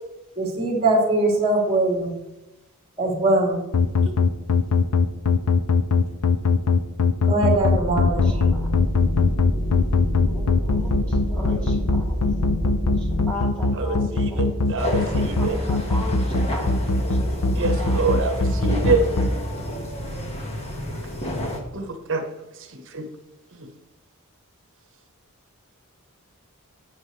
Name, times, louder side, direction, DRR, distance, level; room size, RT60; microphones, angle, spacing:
voice 1, 0.4-2.1 3.0-3.6 7.3-8.5, right 2 dB, 25° right, -1 dB, 3.0 m, -21 dB
sound 1, 3.7-19.3, left 4 dB, 80° left, 0.7 m, -20 dB
sound 2, 7.5-13.3, equal, 55° left, 2.1 m, -27 dB
voice 2, 8.0-8.7 10.2-12.2 13.0-14.6 15.1-18.2, left 1 dB, 5° left, -4 dB, 3.2 m, -37 dB
voice 3, 13.8-15.6 17.5-19.0 21.7-22.2 22.6-23.1 23.5-23.7, right 3 dB, 60° right, 6 dB, 1.3 m, -26 dB
sound 3, 14.8-21.6, equal, 30° left, 1.7 m, -31 dB
11.5 x 9.1 x 3.3 m, 0.95 s
head